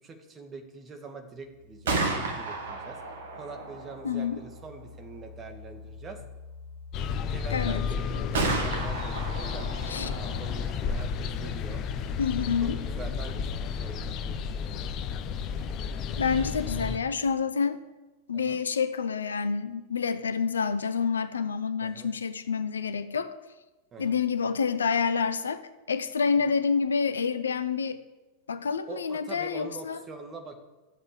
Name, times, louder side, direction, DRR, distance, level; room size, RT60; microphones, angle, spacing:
voice 1, 0.0-3.0 3.3-6.2 7.3-11.8 12.6-14.9 18.3-18.6 21.8-22.1 23.9-24.2 26.4-26.5 28.9-30.6, right 4 dB, 25° right, 5 dB, 2.2 m, -44 dB
Gunshot gunfire, 1.6-15.4, right 2 dB, 60° right, 2.0 m, -36 dB
voice 2, 4.0-4.4 7.5-7.8 9.9-10.1 12.2-12.8 16.2-17.8 18.3-23.3 24.0-25.6 25.9-28.0 28.5-30.0, left 6 dB, 70° left, 13 dB, 0.8 m, -28 dB
sound 1, 6.9-17.0, left 6 dB, 35° left, 1.0 m, -32 dB
14.0 x 8.0 x 7.6 m, 1.1 s
figure-of-eight pair, 90°, 0 cm